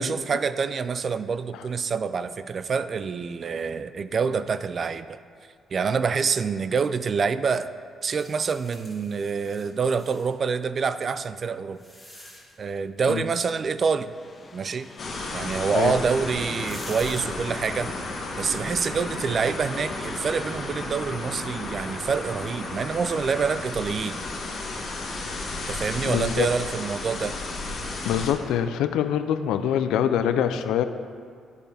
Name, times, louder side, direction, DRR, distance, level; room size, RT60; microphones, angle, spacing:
voice 1, 0.0-5.2 5.7-7.7 8.0-11.8 12.6-14.1 14.5-14.9 15.3-17.9 18.4-24.2 25.7-27.4, right 5 dB, 45° right, 13 dB, 0.3 m, -26 dB
sound 1, 8.1-10.3 11.1-12.7 15.7-15.8 16.3-17.2, equal, 5° right, 1.7 m, -46 dB
sound 2, 14.0-24.1, left 3 dB, 35° left, 0.6 m, -47 dB
sound 3, 15.0-28.3, left 2 dB, 55° left, 1.8 m, -33 dB
voice 2, 26.0-26.5 28.0-30.8, left 9 dB, 85° left, 10 dB, 0.4 m, -24 dB
10.0 x 6.5 x 3.4 m, 2.1 s
cardioid pair, 90°, 0 cm